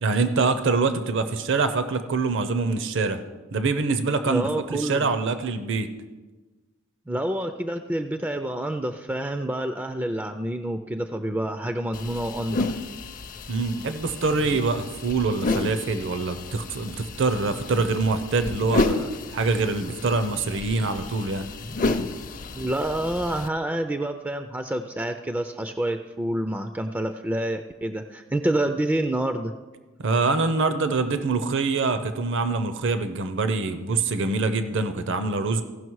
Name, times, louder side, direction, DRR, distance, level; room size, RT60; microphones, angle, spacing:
voice 1, 0.0-3.2 3.5-5.9 13.5-21.5 30.0-35.6, right 3 dB, 65° right, 9 dB, 0.7 m, -25 dB
voice 2, 4.2-5.1 7.1-12.7 22.5-29.5, right 1 dB, 10° right, 8 dB, 0.3 m, -28 dB
sound 1, 11.9-23.5, left 3 dB, 40° left, 0.6 m, -31 dB
16.0 x 5.9 x 4.7 m, 1.2 s
head